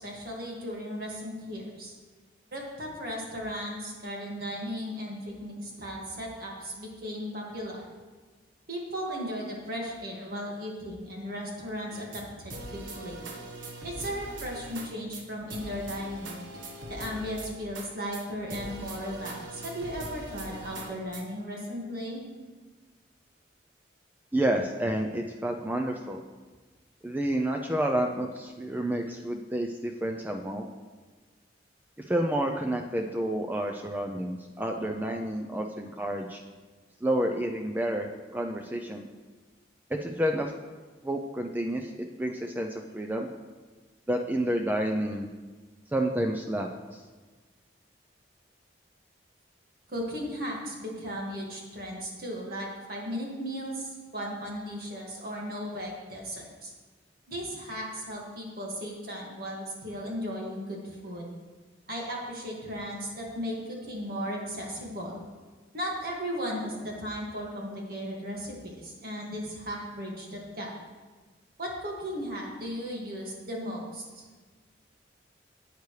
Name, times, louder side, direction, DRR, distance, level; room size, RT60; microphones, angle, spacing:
voice 1, 0.0-1.9 2.5-7.8 8.7-13.2 13.8-16.4 16.9-22.2 49.9-56.7 57.3-61.3 61.9-65.2 65.7-70.7 71.6-74.2, equal, 50° right, -2 dB, 1.9 m, -36 dB
sound 1, 11.9-12.2 12.5-14.9 15.1-15.2 15.5-17.9 18.1-18.2 18.5-21.2, right 1 dB, 85° right, 1.3 m, -41 dB
voice 2, 24.3-26.2 27.0-30.7 32.1-36.4 37.0-39.1 39.9-40.5 41.0-43.3 44.1-45.3 45.9-46.7, right 1 dB, 10° right, 3 dB, 0.4 m, -29 dB
11.5 x 8.3 x 3.2 m, 1.3 s
head